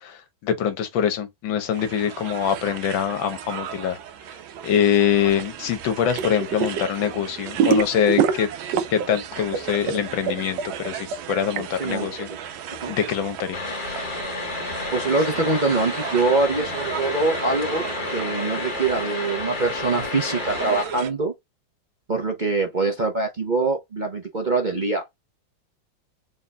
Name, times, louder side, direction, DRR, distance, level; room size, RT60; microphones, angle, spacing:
voice 1, 0.0-4.0 4.6-8.5 8.9-12.3 12.9-13.6, left 8 dB, 80° left, 1.7 m, -24 dB
sound 1, 1.7-21.1, right 9 dB, 85° right, 1.5 m, -37 dB
sound 2, 6.1-6.8 7.1-9.2 9.4-11.6, right 7 dB, 70° right, 1.3 m, -23 dB
sound 3, 13.5-20.8, left 2 dB, 35° left, 0.9 m, -30 dB
voice 2, 14.9-17.9 18.1-21.3 22.1-25.0, right 3 dB, 50° right, 0.5 m, -24 dB
4.1 x 3.9 x 2.3 m
omnidirectional pair, 2.1 m